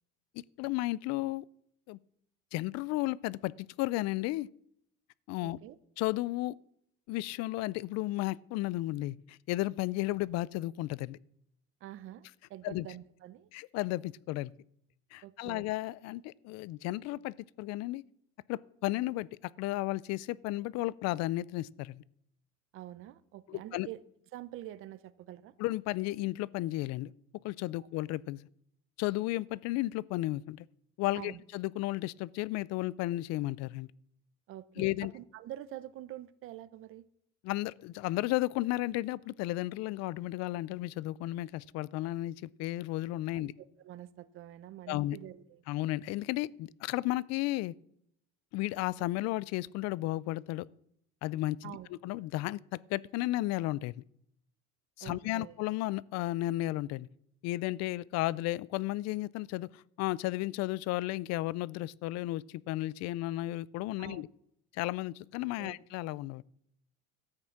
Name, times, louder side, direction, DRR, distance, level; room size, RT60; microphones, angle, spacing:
voice 1, 0.3-1.4 1.9-2.0 2.5-4.5 5.3-5.6 6.0-6.6 7.1-11.2 12.6-12.9 13.5-14.5 15.1-18.0 18.5-22.0 23.5-23.9 25.6-27.1 27.4-28.4 29.0-30.7 31.0-33.9 34.8-35.1 37.4-43.5 44.9-45.2 45.7-47.7 48.5-50.7 51.2-51.8 52.0-54.0 55.0-57.1 57.4-64.3 64.7-66.4, left 17 dB, 55° left, 0.4 m, -33 dB
voice 2, 5.4-5.8 11.8-13.5 15.2-15.7 22.7-24.0 24.3-25.5 31.1-31.4 34.5-37.1 43.3-45.6 51.6-51.9 55.0-55.6 64.0-64.2 65.6-65.8, right 13 dB, 45° right, 0.7 m, -46 dB
13.5 x 8.9 x 5.8 m
cardioid pair, 170°, 31 cm